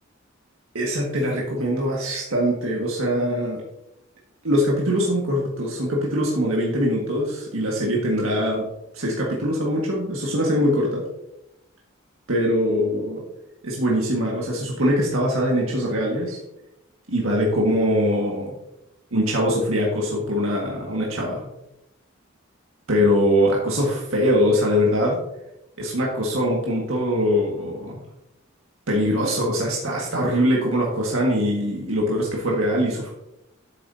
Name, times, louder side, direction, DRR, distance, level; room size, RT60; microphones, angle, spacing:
voice 1, 0.7-3.6 4.4-8.7 8.9-11.0 12.3-13.2 13.6-16.4 17.1-18.5 19.1-21.5 22.9-25.2 25.8-28.0 28.9-33.1, equal, 90° right, -3 dB, 1.7 m, -22 dB
9.2 x 7.3 x 2.7 m, 0.87 s
head